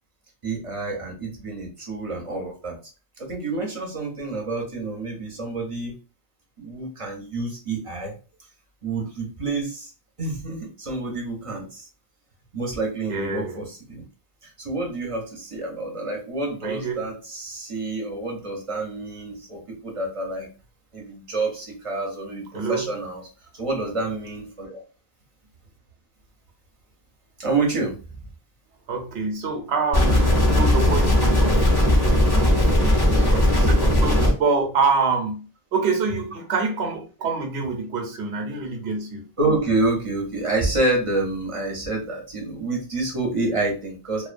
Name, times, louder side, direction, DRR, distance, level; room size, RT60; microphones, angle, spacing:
voice 1, 0.4-2.8 3.2-5.9 6.6-8.1 8.8-9.9 10.2-11.9 12.5-14.0 14.4-20.5 20.9-23.2 23.6-24.8 27.4-28.0 39.4-44.3, right 2 dB, 35° right, 0 dB, 0.7 m, -28 dB
voice 2, 13.1-13.6 16.6-17.1 22.5-22.9 28.9-31.7 32.0-35.4 35.7-39.2, right 4 dB, 85° right, 2 dB, 1.0 m, -26 dB
sound 1, 29.9-34.3, left 1 dB, 25° left, 0.6 m, -18 dB
2.4 x 2.1 x 2.5 m, 0.35 s
omnidirectional pair, 1.1 m